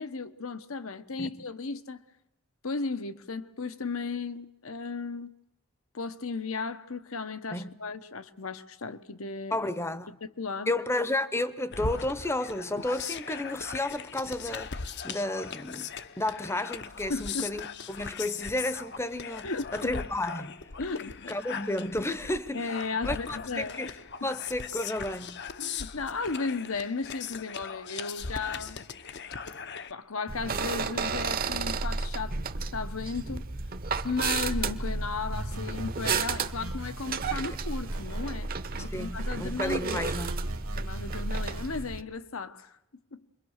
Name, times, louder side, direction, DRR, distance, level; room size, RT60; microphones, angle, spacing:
voice 1, 0.0-2.0 2.6-5.3 5.9-9.7 10.4-10.7 17.1-17.5 19.4-19.9 20.8-21.4 22.5-24.0 25.6-28.8 29.9-32.4 32.7-33.4 34.0-38.5 38.8-40.1 40.8-42.7 43.1-43.2, left 4 dB, 75° left, 1.1 m, -35 dB
voice 2, 9.5-10.2 10.7-14.7 15.0-15.9 16.2-20.6 21.3-23.9 24.2-25.4 37.3-37.4 38.8-40.3, left 1 dB, 10° left, 0.8 m, -32 dB
sound 1, 11.7-29.9, left 6 dB, 50° left, 0.8 m, -39 dB
sound 2, 30.3-42.0, right 4 dB, 45° right, 0.9 m, -32 dB
sound 3, 35.3-38.3 38.7-41.8, right 2 dB, 80° right, 1.6 m, -43 dB
27.5 x 22.5 x 6.5 m
head